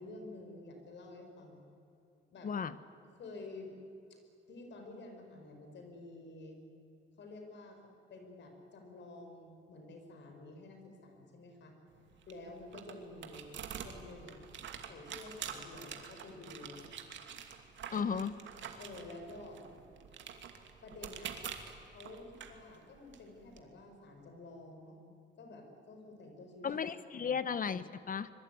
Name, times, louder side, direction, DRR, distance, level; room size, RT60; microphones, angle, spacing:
voice 1, 0.0-1.6 2.3-2.6 3.2-3.7 4.1-4.2 4.5-6.6 7.2-7.8 8.1-11.8 12.3-14.4 14.9-16.8 17.9-18.3 18.8-19.6 20.8-21.4 21.9-25.0 25.4-26.7 27.1-27.4, left 2 dB, 65° left, 4 dB, 5.9 m, -50 dB
sound 1, 11.9-23.6, right 8 dB, 70° right, 2.6 m, -47 dB
voice 2, 17.9-18.3 26.6-28.3, left 6 dB, 45° left, 14 dB, 1.1 m, -35 dB
25.0 x 22.5 x 9.7 m, 2.8 s
cardioid pair, 90°, 20 cm